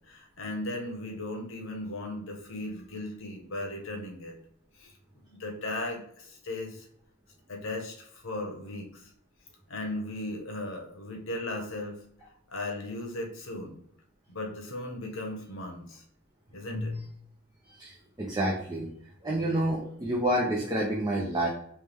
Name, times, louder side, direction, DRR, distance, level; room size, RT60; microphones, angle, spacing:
voice 1, 0.1-4.3 4.8-4.9 5.3-6.9 7.5-9.1 9.7-12.0 12.5-13.8 14.3-16.0 16.5-16.9, left 1 dB, 65° left, 2 dB, 1.0 m, -37 dB
voice 2, 17.7-18.9 19.2-21.5, right 1 dB, 20° right, -3 dB, 0.6 m, -29 dB
3.3 x 3.2 x 3.4 m, 0.67 s
head